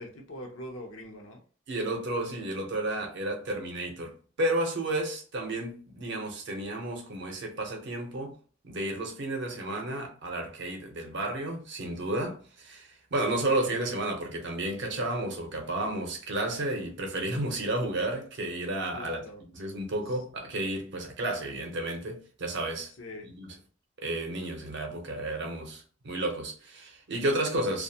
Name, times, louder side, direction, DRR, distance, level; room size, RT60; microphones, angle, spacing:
voice 1, 0.0-1.4 18.9-19.4 20.1-20.2 23.0-23.3, left 1 dB, 70° left, 0.7 m, -42 dB
voice 2, 1.7-8.3 8.6-19.2 19.5-22.9 23.2-23.5 24.0-27.8, right 1 dB, 60° right, 0.7 m, -32 dB
2.4 x 2.1 x 2.7 m
head